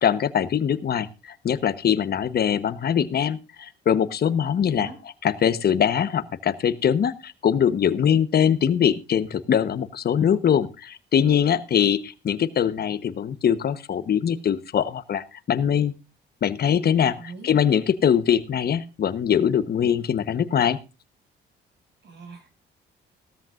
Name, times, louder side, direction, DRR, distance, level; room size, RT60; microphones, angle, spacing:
voice 1, 0.0-4.9 5.2-15.9 16.4-20.8, left 8 dB, 55° left, 13 dB, 1.1 m, -22 dB
voice 2, 4.6-5.0 17.1-17.5 22.0-22.5, right 4 dB, 60° right, 6 dB, 6.6 m, -41 dB
17.5 x 13.5 x 2.5 m, 0.30 s
cardioid pair, 90°, 20 cm